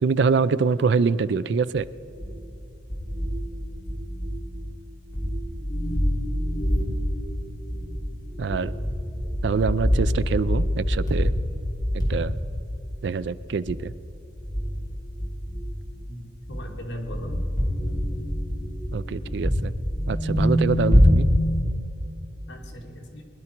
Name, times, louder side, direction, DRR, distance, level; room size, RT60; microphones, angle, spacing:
voice 1, 0.0-1.9 8.4-8.7 9.4-11.3 12.1-12.3 13.0-13.9 18.9-19.7 20.1-21.3, right 5 dB, 60° right, 16 dB, 0.4 m, -24 dB
sound 1, 1.8-2.6 2.9-4.8 5.1-16.1 16.4-21.6, equal, 20° left, 3.3 m, -25 dB
voice 2, 16.1-17.4 17.8-18.1 22.5-23.2, equal, 65° left, 0 dB, 2.2 m, -38 dB
21.0 x 11.0 x 4.5 m, 3.0 s
head